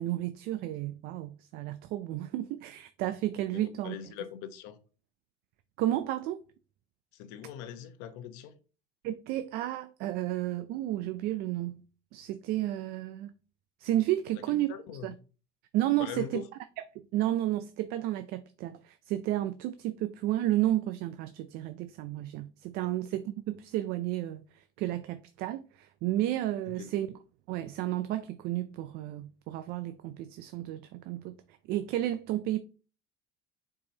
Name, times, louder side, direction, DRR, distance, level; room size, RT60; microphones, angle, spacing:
voice 1, 0.0-4.0 5.8-6.4 9.0-11.8 12.1-13.3 13.8-14.7 15.0-15.1 15.7-16.4 16.8-27.2 27.5-32.6, right 14 dB, 70° right, 0.5 m, -32 dB
voice 2, 3.5-4.8 7.1-8.5 14.7-15.1 16.0-16.4 22.8-22.9 26.7-26.9, left 9 dB, 85° left, 0.9 m, -42 dB
7.1 x 4.8 x 2.8 m
cardioid pair, 135°, 17 cm